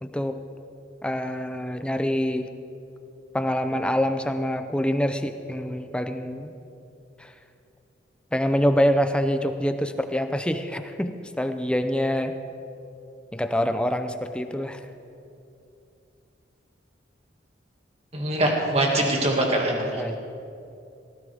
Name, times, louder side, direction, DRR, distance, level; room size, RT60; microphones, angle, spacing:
voice 1, 0.0-0.4 1.0-2.5 3.3-6.5 7.2-7.3 8.3-12.4 13.3-14.8 20.0-20.2, equal, 5° left, 8 dB, 0.6 m, -25 dB
voice 2, 18.1-20.0, right 1 dB, 35° right, 0 dB, 2.1 m, -23 dB
18.0 x 15.0 x 3.6 m, 2.7 s
head